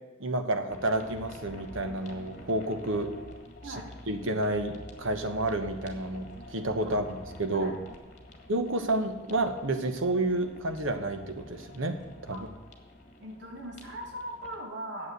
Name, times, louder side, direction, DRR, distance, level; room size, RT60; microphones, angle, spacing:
voice 1, 0.2-3.1 3.7-7.7 8.5-12.0 12.2-12.4, right 2 dB, 80° right, 7 dB, 1.1 m, -30 dB
sound 1, 0.7-14.6, left 1 dB, 35° left, 1.6 m, -48 dB
voice 2, 13.2-15.1, right 1 dB, 60° right, 1 dB, 2.3 m, -40 dB
9.3 x 7.4 x 8.2 m, 1.3 s
head